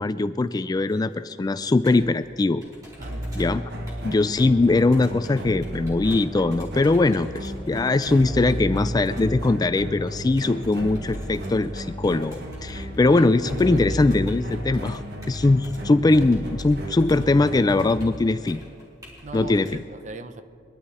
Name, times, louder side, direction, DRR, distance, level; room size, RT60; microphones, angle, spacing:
voice 1, 0.0-2.6 3.4-3.6 4.0-15.0 15.3-18.6 19.3-19.8, left 2 dB, 20° left, 12 dB, 0.3 m, -21 dB
Computer keyboard, 0.9-19.7, equal, 20° right, 4.3 m, -47 dB
voice 2, 3.0-3.3 13.3-14.2 19.2-20.4, right 2 dB, 40° right, 10 dB, 0.8 m, -39 dB
sound 1, 3.0-18.0, equal, 60° right, 1.5 m, -33 dB
22.5 x 12.0 x 4.2 m, 2.3 s
head